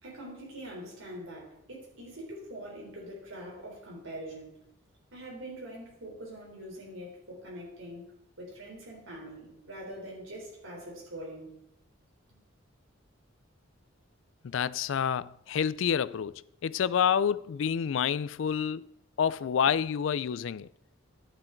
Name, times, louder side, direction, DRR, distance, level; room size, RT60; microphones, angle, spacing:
voice 1, 0.0-4.6 5.1-8.1 8.4-11.6 12.3-12.4, right 1 dB, 80° right, 3.6 m, -43 dB
voice 2, 14.4-18.9 19.2-20.7, left 7 dB, 70° left, 0.4 m, -28 dB
11.0 x 7.7 x 4.5 m
head